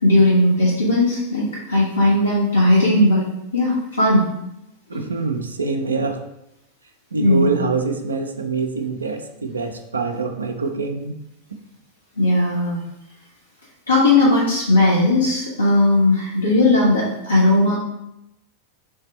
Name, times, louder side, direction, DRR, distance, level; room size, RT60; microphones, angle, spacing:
voice 1, 0.0-3.2 3.5-4.2 4.9-5.0 7.2-7.5 12.2-12.8 13.9-17.8, left 2 dB, 80° left, -6 dB, 0.9 m, -17 dB
voice 2, 4.9-6.2 7.1-11.2, right 4 dB, 75° right, 5 dB, 0.4 m, -25 dB
3.3 x 3.2 x 4.4 m, 0.85 s
figure-of-eight pair, 90°, 0 cm